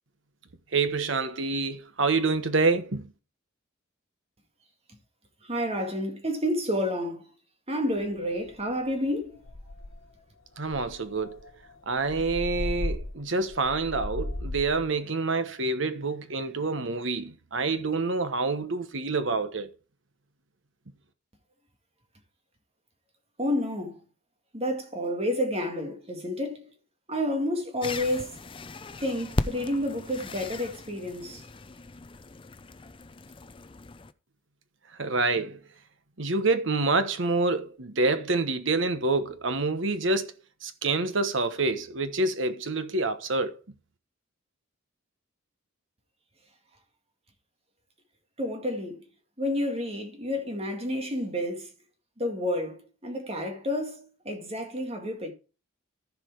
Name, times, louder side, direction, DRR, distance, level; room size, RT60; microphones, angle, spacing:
voice 1, 0.7-3.1 10.6-11.4 11.9-19.7 35.0-35.6 36.2-40.3 40.6-43.6, right 3 dB, 65° right, 1.2 m, -27 dB
voice 2, 5.4-7.3 7.7-9.4 23.4-24.0 24.5-26.7 27.1-28.4 29.0-31.4 48.4-49.1 49.4-51.7 52.2-55.3, left 1 dB, 30° right, 2.0 m, -30 dB
sound 1, 8.0-8.1 8.5-8.7 9.1-9.2 9.4-10.1 10.7-14.9, left 1 dB, 70° left, 1.1 m, -36 dB
sound 2, 27.8-34.1, left 2 dB, 25° left, 0.5 m, -37 dB
14.0 x 5.0 x 4.7 m
head